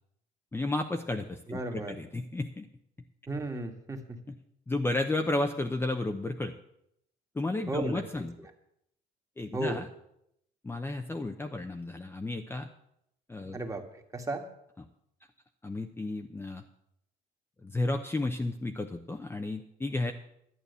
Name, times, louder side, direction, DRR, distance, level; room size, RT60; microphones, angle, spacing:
voice 1, 0.5-2.7 4.7-6.5 7.3-8.3 9.4-9.9 10.6-12.7 13.3-13.6 15.6-16.6 17.6-20.1, left 2 dB, 15° left, 4 dB, 0.8 m, -32 dB
voice 2, 1.5-2.0 3.3-4.2 7.7-8.0 8.4-8.5 9.5-9.8 13.5-14.4, right 2 dB, 20° right, 3 dB, 1.8 m, -35 dB
11.5 x 8.9 x 6.8 m, 0.76 s
cardioid pair, 110°, 17 cm